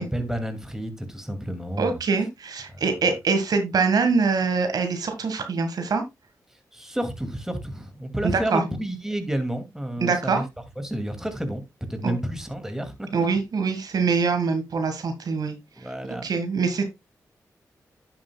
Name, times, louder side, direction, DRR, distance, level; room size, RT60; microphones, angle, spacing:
voice 1, 0.0-2.0 2.7-2.8 6.7-10.4 10.8-11.6 11.9-13.3 15.8-16.3, right 1 dB, 5° right, 2.3 m, -30 dB
voice 2, 1.8-6.0 8.2-8.6 10.0-10.4 12.0-12.1 13.1-15.5 16.2-16.8, right 4 dB, 70° right, 1.6 m, -24 dB
10.5 x 7.6 x 2.3 m
cardioid pair, 50°, 7 cm